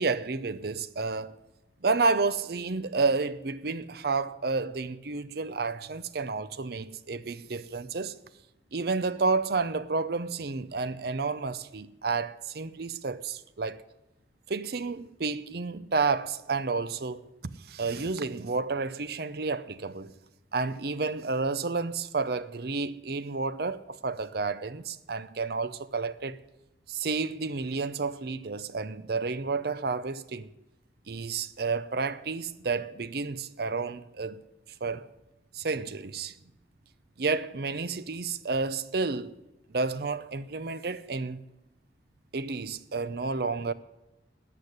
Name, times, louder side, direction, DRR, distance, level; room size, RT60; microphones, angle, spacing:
voice 1, 0.0-1.4 1.8-8.2 8.7-13.8 14.5-17.3 17.7-20.1 20.5-26.4 26.9-30.5 31.1-34.4 34.8-35.1 35.5-36.3 37.2-39.4 39.7-41.4 42.3-43.7, right 4 dB, 60° right, 0.7 m, -30 dB
13.5 x 8.4 x 9.8 m
head